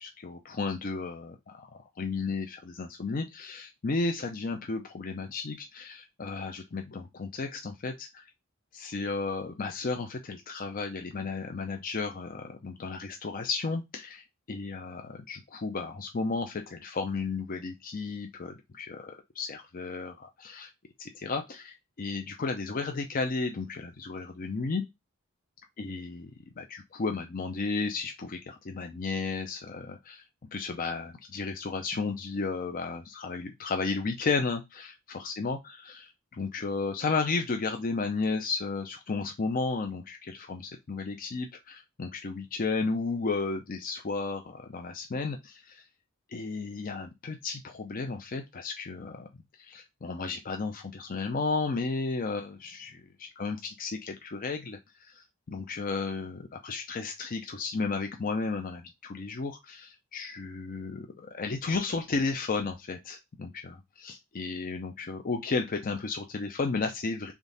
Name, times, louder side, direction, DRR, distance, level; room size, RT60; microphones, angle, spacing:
voice 1, 0.0-8.2 8.7-20.7 21.0-24.8 25.8-26.3 26.6-30.2 30.5-45.8 46.3-49.3 49.6-67.3, left 4 dB, 45° left, 5 dB, 0.5 m, -33 dB
3.7 x 3.5 x 3.9 m, 0.21 s
head